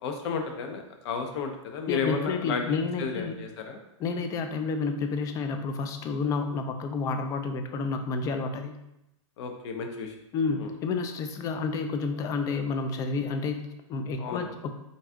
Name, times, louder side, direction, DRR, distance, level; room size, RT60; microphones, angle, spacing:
voice 1, 0.0-3.8 9.4-10.1 10.6-10.7 14.2-14.5, left 5 dB, 55° left, 4 dB, 0.6 m, -33 dB
voice 2, 1.9-3.4 4.0-8.7 10.3-14.7, left 4 dB, 20° left, 6 dB, 0.3 m, -30 dB
3.9 x 2.4 x 3.5 m, 0.87 s
hypercardioid pair, 135°, 17 cm